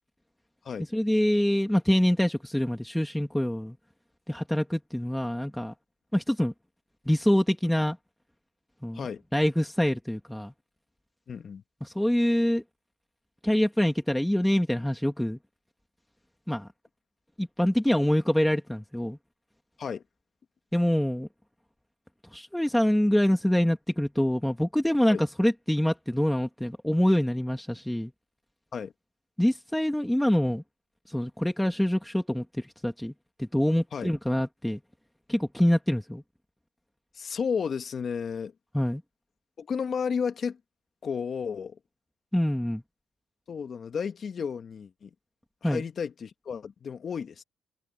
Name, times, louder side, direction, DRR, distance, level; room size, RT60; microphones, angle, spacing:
voice 1, 0.9-3.8 4.3-5.7 6.1-6.5 7.1-8.0 8.8-10.5 11.8-12.6 13.4-15.4 16.5-16.7 17.4-19.2 20.7-21.3 22.3-28.1 29.4-30.6 31.1-33.1 33.4-34.8 35.3-36.2 38.7-39.0 42.3-42.8 45.6-45.8, equal, 5° left, 2.1 m, -25 dB
voice 2, 11.3-11.6 19.8-20.0 25.1-25.2 28.7-28.9 33.9-34.1 37.1-38.5 39.6-40.6 41.0-41.8 43.5-45.1 45.6-47.4, left 6 dB, 50° left, 1.7 m, -32 dB
cardioid pair, 90°, 0 cm